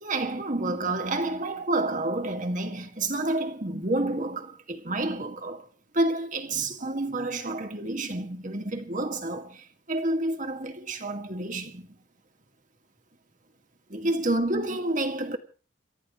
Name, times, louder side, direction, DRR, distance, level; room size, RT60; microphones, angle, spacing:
voice 1, 0.0-5.7 5.9-11.9 13.9-15.4, right 2 dB, 40° right, 2.1 m, -29 dB
28.5 x 13.0 x 3.2 m
head